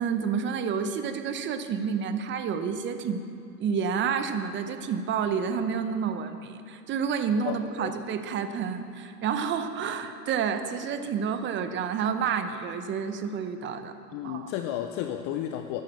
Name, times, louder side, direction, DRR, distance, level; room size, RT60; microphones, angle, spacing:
voice 1, 0.0-3.2 3.6-13.9 14.2-14.5, right 6 dB, 25° right, 9 dB, 0.8 m, -29 dB
voice 2, 7.5-7.9 14.1-15.8, left 11 dB, 25° left, 7 dB, 0.4 m, -33 dB
13.5 x 10.5 x 6.6 m, 2.6 s
hypercardioid pair, 115°, 47 cm